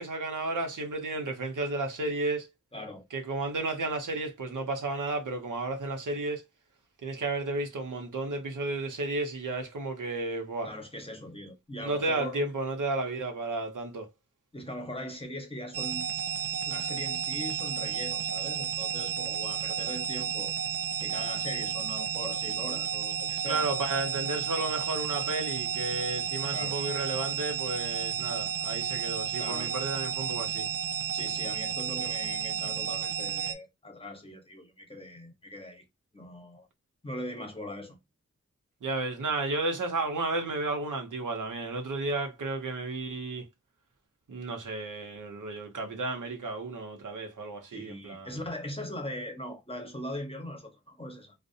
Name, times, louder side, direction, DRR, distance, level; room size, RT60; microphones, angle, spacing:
voice 1, 0.0-2.5 3.1-6.4 7.0-10.7 11.8-14.1 23.5-30.7 38.8-43.4 44.3-48.3, right 2 dB, 85° right, 0.7 m, -32 dB
voice 2, 2.7-3.0 10.6-12.5 14.5-16.0 16.6-20.5 21.0-23.7 26.5-26.8 29.4-29.7 31.1-35.8 36.1-36.7 37.0-38.0 47.7-51.3, left 1 dB, 20° left, 0.8 m, -40 dB
sound 1, 15.7-33.5, right 8 dB, 50° right, 0.4 m, -32 dB
2.5 x 2.0 x 2.6 m
wide cardioid pair, 50°, 30 cm